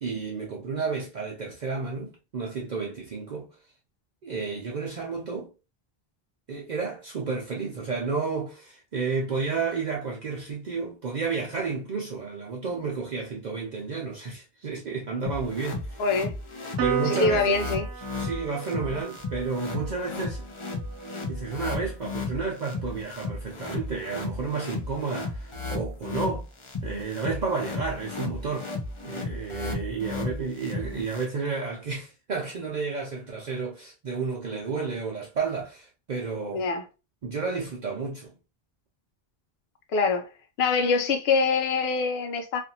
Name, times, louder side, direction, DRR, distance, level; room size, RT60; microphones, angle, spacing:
voice 1, 0.0-3.5 4.2-5.5 6.5-16.0 16.8-17.6 18.2-20.5 21.3-26.5 26.8-28.7 29.0-36.6 37.2-38.4, right 4 dB, 55° right, 0.6 m, -31 dB
sound 1, 15.2-31.2, left 3 dB, 35° left, 0.6 m, -35 dB
voice 2, 16.0-16.3 17.0-17.8 36.5-36.8 39.9-40.3 40.6-42.6, left 4 dB, 90° left, 0.8 m, -24 dB
Piano, 16.8-23.5, right 7 dB, 75° right, 0.9 m, -36 dB
2.5 x 2.5 x 2.6 m
omnidirectional pair, 1.0 m